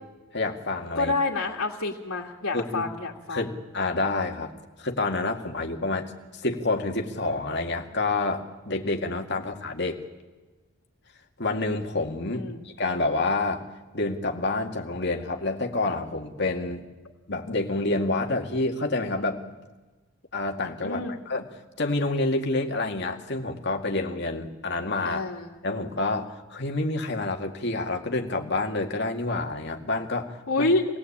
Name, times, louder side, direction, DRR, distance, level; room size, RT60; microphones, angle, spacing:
voice 1, 0.3-1.1 2.5-2.9 3.3-4.5 4.8-6.1 6.4-10.0 11.4-12.5 12.8-13.7 13.9-16.8 17.3-19.5 20.3-21.4 21.8-25.2 25.6-30.3, left 2 dB, 50° left, 3 dB, 2.2 m, -28 dB
voice 2, 0.9-3.6 12.3-12.6 20.8-21.2 25.0-25.5 30.5-30.9, left 2 dB, 75° left, -3 dB, 2.6 m, -28 dB
26.0 x 18.0 x 8.7 m, 1.2 s
head